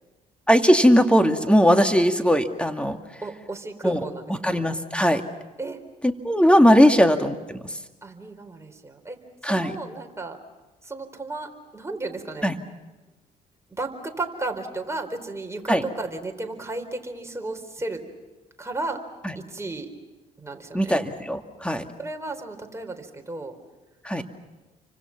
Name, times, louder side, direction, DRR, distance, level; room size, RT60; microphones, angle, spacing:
voice 1, 0.5-3.0 3.8-4.0 4.4-5.2 6.0-7.7 9.4-9.8 12.4-12.5 15.7-15.8 19.2-19.3 20.7-21.8 24.0-24.2, equal, 5° left, 6 dB, 2.3 m, -19 dB
voice 2, 3.2-4.5 5.6-5.8 6.8-6.9 8.0-9.2 9.4-10.4 10.8-12.5 13.7-18.0 18.6-19.0 19.3-19.9 20.4-21.0 22.0-23.5 24.1-24.2, right 2 dB, 15° right, 3 dB, 4.3 m, -34 dB
30.0 x 25.0 x 6.0 m, 1.1 s
hypercardioid pair, 55°, 21 cm